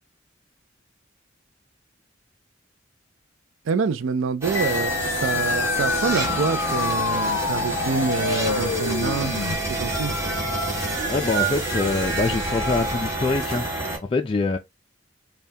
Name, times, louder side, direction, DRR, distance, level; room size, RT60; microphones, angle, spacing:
voice 1, 3.7-9.4 9.7-10.1, right 5 dB, 85° right, 0.4 m, -26 dB
sound 1, 4.4-14.0, right 2 dB, 15° right, 1.5 m, -27 dB
sound 2, 4.5-9.5, left 6 dB, 85° left, 0.5 m, -27 dB
voice 2, 11.1-14.6, left 3 dB, 25° left, 0.3 m, -25 dB
5.4 x 2.3 x 2.7 m
head